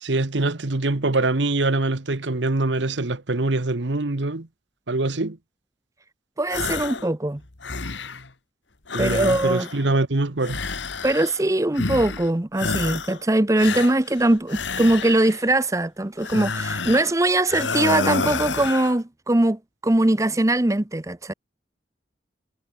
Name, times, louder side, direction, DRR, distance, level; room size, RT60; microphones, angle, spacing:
voice 1, 0.0-4.5 4.9-5.4 8.9-10.6, right 2 dB, 75° right, 1.3 m, -24 dB
voice 2, 6.4-7.4 9.0-9.7 11.0-21.3, right 1 dB, 15° right, 0.7 m, -21 dB
sound 1, 6.5-7.1 7.4-8.3 8.9-9.9 10.4-11.4 11.7-12.3 12.6-13.2 13.6-15.4 16.2-17.1 17.5-19.0, left 4 dB, 80° left, 2.1 m, -29 dB
head